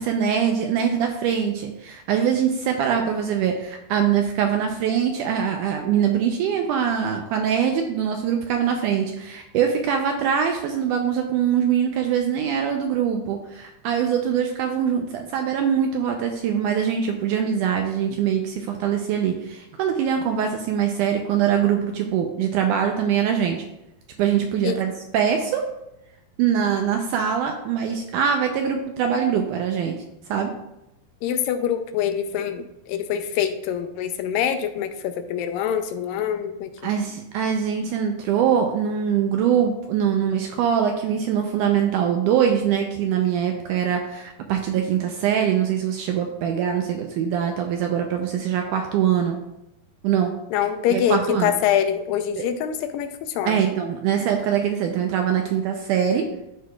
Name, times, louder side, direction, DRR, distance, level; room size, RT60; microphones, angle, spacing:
voice 1, 0.0-23.6 24.2-25.6 26.4-30.0 30.3-30.5 36.8-49.4 50.0-50.3 50.9-51.5 52.4-52.5 53.5-56.3, right 8 dB, 80° right, 3 dB, 1.9 m, -23 dB
voice 2, 31.2-36.9 50.5-53.7, left 9 dB, 80° left, 8 dB, 2.3 m, -25 dB
13.5 x 4.7 x 2.3 m, 0.89 s
omnidirectional pair, 4.1 m